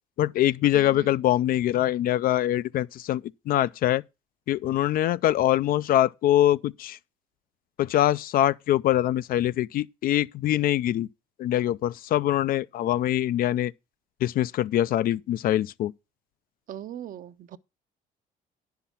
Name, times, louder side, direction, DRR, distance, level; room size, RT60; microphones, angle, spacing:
voice 1, 0.2-4.0 4.5-7.0 7.8-11.1 11.4-13.7 14.2-15.9, left 13 dB, 60° left, 0.4 m, -24 dB
voice 2, 0.7-1.1 16.7-17.6, right 11 dB, 55° right, 0.7 m, -39 dB
10.0 x 5.8 x 5.7 m
cardioid pair, 110°, 17 cm